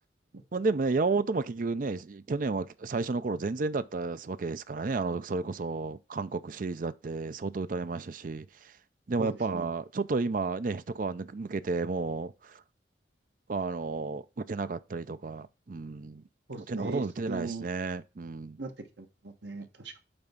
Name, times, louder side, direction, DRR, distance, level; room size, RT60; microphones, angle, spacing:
voice 1, 0.5-8.7 9.1-12.6 13.5-16.2 16.7-18.6, right 3 dB, 50° right, 0.5 m, -32 dB
voice 2, 9.2-9.7 16.5-17.7 18.6-18.7 19.0-20.0, right 3 dB, 75° right, 1.3 m, -38 dB
8.7 x 3.6 x 5.5 m
head